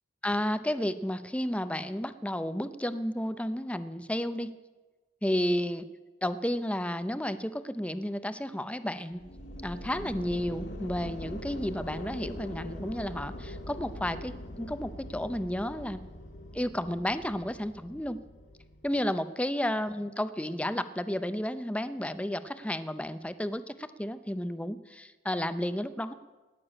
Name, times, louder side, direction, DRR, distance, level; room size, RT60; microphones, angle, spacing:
voice 1, 0.2-4.5 5.2-5.8 6.2-9.2 9.6-16.0 16.5-18.2 18.8-26.1, left 1 dB, 5° left, 12 dB, 0.5 m, -32 dB
sound 1, 9.1-19.1, left 1 dB, 70° left, 1.7 m, -42 dB
17.5 x 6.8 x 9.8 m, 1.2 s
head